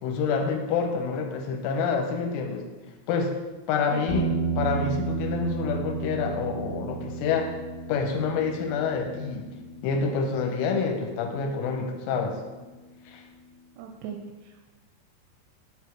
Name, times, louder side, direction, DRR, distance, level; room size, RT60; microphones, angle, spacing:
voice 1, 0.0-2.6 3.1-3.3 3.7-4.3 4.6-7.5 7.9-9.5 9.8-12.4 13.1-13.2, left 5 dB, 85° left, 3 dB, 3.1 m, -27 dB
sound 1, 4.1-12.4, right 4 dB, 55° left, 2.9 m, -33 dB
voice 2, 13.8-14.6, right 7 dB, 85° right, 3 dB, 2.7 m, -39 dB
7.9 x 3.5 x 4.5 m, 1.2 s
omnidirectional pair, 5.7 m